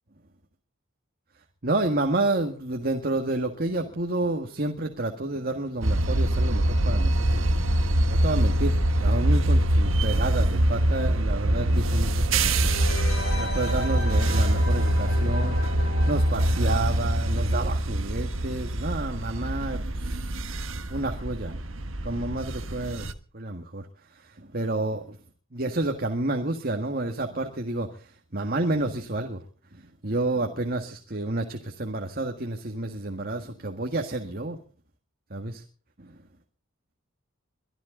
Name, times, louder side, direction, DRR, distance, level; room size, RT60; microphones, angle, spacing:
voice 1, 1.6-7.7 8.1-12.8 13.4-20.3 20.9-21.6 22.0-23.1 23.3-23.9 24.1-25.2 25.5-29.4 29.7-34.6 35.3-35.6 36.0-36.1, right 2 dB, 45° right, 4 dB, 1.7 m, -30 dB
sound 1, 5.8-23.1, right 1 dB, 70° right, 1.4 m, -24 dB
sound 2, 12.4-17.9 18.2-18.3, left 1 dB, 90° left, 5.2 m, -38 dB
24.0 x 12.5 x 3.9 m, 0.41 s
head